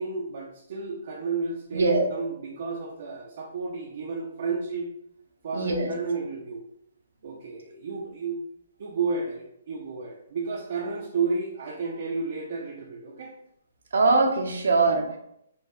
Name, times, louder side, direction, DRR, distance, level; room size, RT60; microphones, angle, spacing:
voice 1, 0.0-4.9 5.4-6.6 7.2-8.4 8.8-13.3, right 4 dB, 55° right, -1 dB, 0.6 m, -32 dB
voice 2, 1.7-2.1 5.5-5.9 13.9-15.2, right 3 dB, 80° right, 2 dB, 0.9 m, -22 dB
4.4 x 2.9 x 3.0 m, 0.75 s
hypercardioid pair, 160°, 0 cm